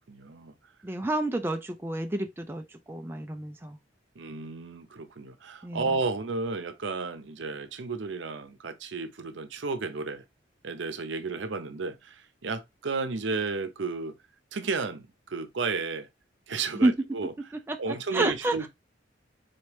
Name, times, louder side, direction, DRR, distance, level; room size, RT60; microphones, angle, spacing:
voice 1, 0.1-0.5 4.2-10.2 10.6-14.2 14.5-16.1 16.5-17.3 17.8-18.7, right 4 dB, 70° right, 0.7 m, -33 dB
voice 2, 0.8-3.8 5.6-5.9 16.8-16.9 17.7-18.7, right 2 dB, 10° right, 0.3 m, -29 dB
4.2 x 3.3 x 3.0 m
head